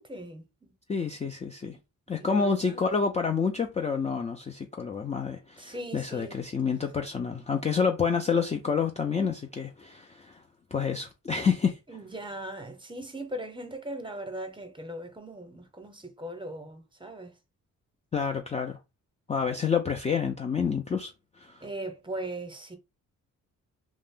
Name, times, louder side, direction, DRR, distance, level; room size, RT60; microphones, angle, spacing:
voice 1, 0.0-0.7 2.1-2.8 5.6-6.4 11.9-17.3 21.6-22.8, right 1 dB, 15° right, 0.7 m, -39 dB
voice 2, 0.9-1.8 2.1-10.4 10.7-11.8 18.1-18.8 19.3-21.1 21.4-21.7, left 6 dB, 20° left, 0.3 m, -28 dB
2.5 x 2.0 x 3.5 m
cardioid pair, 85°, 32 cm